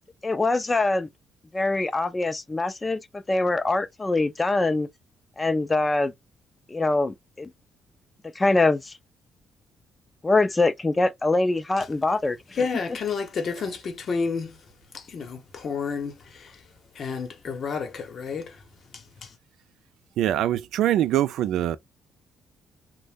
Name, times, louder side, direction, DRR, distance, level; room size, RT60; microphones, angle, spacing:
voice 1, 0.2-1.1 1.5-3.0 3.3-4.9 5.4-6.1 6.7-7.5 8.4-8.9 10.2-12.7, left 2 dB, 20° left, 0.5 m, -23 dB
voice 2, 12.6-14.5 14.9-16.1 17.0-18.5, left 5 dB, 55° left, 0.9 m, -30 dB
voice 3, 20.2-21.8, right 12 dB, 85° right, 0.3 m, -23 dB
2.6 x 2.1 x 3.4 m
cardioid pair, 90°, 0 cm